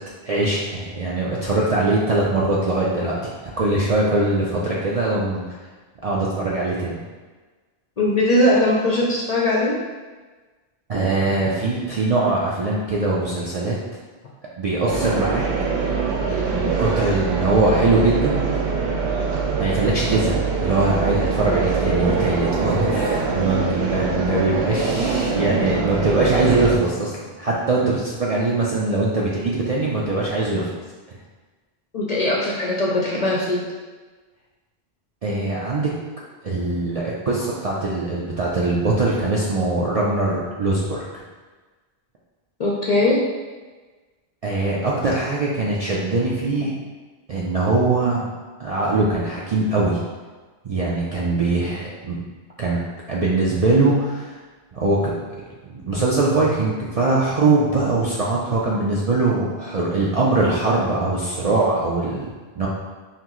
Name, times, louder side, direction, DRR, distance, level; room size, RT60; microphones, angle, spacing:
voice 1, 0.2-5.4 6.0-6.9 10.9-13.8 14.6-15.4 16.2-18.4 19.6-27.1 27.4-30.7 35.2-35.9 36.4-41.2 44.4-46.7 47.3-48.3 48.6-50.0 50.6-52.2 52.6-52.8 53.1-54.4 54.7-55.1 55.6-62.3 62.6-62.7, right 2 dB, 55° right, -5 dB, 0.4 m, -22 dB
voice 2, 8.0-9.7 31.9-33.6 42.6-43.2, left 1 dB, 50° left, -4 dB, 0.5 m, -20 dB
sound 1, 14.9-26.8, right 4 dB, 80° right, 0.9 m, -23 dB
5.7 x 2.0 x 3.0 m, 1.3 s
omnidirectional pair, 1.1 m